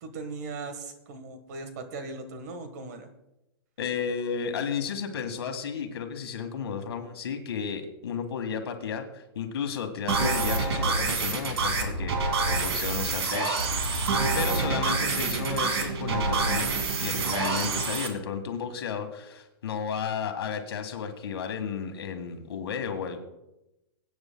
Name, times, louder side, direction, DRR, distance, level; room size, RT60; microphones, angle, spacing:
voice 1, 0.0-3.1 14.2-14.5, right 3 dB, 40° right, 8 dB, 1.4 m, -39 dB
voice 2, 3.8-14.0 14.3-16.7 17.0-23.2, left 6 dB, 75° left, 6 dB, 1.8 m, -33 dB
sound 1, 10.1-18.1, right 3 dB, 85° right, 2.4 m, -27 dB
23.0 x 9.0 x 2.3 m, 0.92 s
hypercardioid pair, 175°, 13 cm